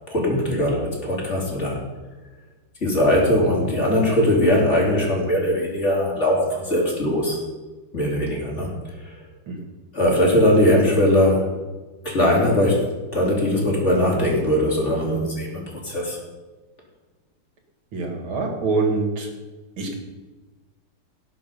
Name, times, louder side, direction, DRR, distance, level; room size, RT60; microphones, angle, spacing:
voice 1, 0.1-1.8 2.8-7.4 7.9-8.7 9.0-9.1 9.9-11.5 12.1-12.9 13.1-16.2, left 1 dB, 35° left, -3 dB, 3.4 m, -20 dB
voice 2, 17.9-19.3 19.8-19.9, right 3 dB, 80° right, 2 dB, 2.8 m, -24 dB
19.0 x 6.4 x 5.3 m, 1.2 s
omnidirectional pair, 2.2 m